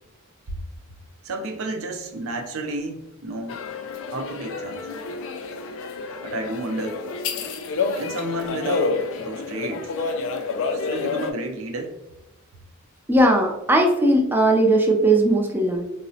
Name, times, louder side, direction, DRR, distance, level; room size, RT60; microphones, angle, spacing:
voice 1, 1.2-3.7 4.1-4.9 6.2-7.0 7.9-9.9 10.7-12.0, right 2 dB, 65° right, 5 dB, 0.5 m, -31 dB
sound 1, 3.5-11.3, left 4 dB, 60° left, 0.3 m, -29 dB
voice 2, 13.1-15.8, right 1 dB, 10° right, 2 dB, 0.4 m, -18 dB
3.8 x 2.0 x 2.6 m, 0.95 s
head